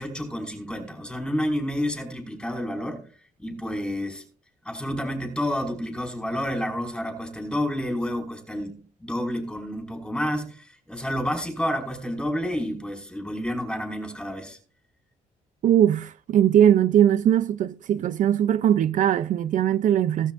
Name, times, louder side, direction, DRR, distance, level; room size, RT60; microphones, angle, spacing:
voice 1, 0.0-3.1 3.4-4.2 4.7-14.6, equal, 5° left, 5.4 m, -29 dB
voice 2, 15.6-20.3, right 10 dB, 65° right, 0.5 m, -20 dB
18.5 x 13.0 x 2.5 m
cardioid pair, 105°, 14 cm